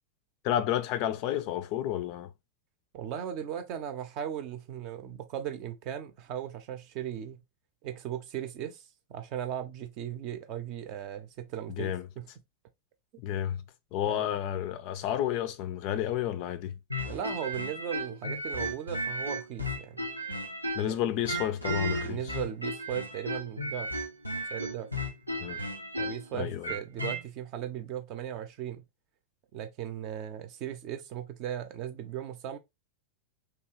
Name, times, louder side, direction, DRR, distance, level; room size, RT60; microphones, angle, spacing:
voice 1, 0.4-2.3 11.7-12.1 13.2-13.6 13.9-16.8 20.8-22.4 25.4-25.6 26.3-26.7, left 11 dB, 45° left, 0.4 m, -31 dB
voice 2, 2.9-7.4 7.8-12.3 14.0-14.3 17.0-20.1 22.0-23.9 24.5-24.9 26.0-28.8 29.5-32.6, right 10 dB, 40° right, 0.6 m, -37 dB
sound 1, 16.9-21.0 21.3-27.2, equal, 90° right, 0.6 m, -34 dB
3.0 x 2.4 x 2.9 m
figure-of-eight pair, 90°, 0 cm